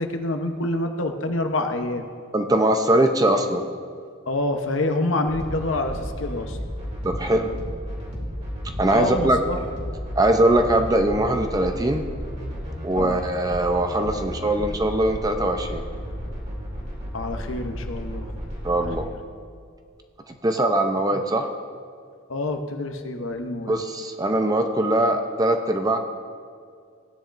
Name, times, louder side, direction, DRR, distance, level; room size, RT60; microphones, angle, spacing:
voice 1, 0.0-2.0 4.3-6.6 8.9-9.6 13.0-13.2 17.1-18.3 18.8-19.1 22.3-23.8, left 2 dB, 70° left, 5 dB, 0.9 m, -27 dB
voice 2, 2.3-3.7 7.0-7.5 8.8-9.4 10.2-12.1 12.8-15.8 18.6-19.1 20.3-21.5 23.7-26.0, right 1 dB, 20° right, 5 dB, 0.6 m, -21 dB
sound 1, 5.3-19.0, equal, 35° right, 2.6 m, -33 dB
16.0 x 10.0 x 2.6 m, 2.2 s
head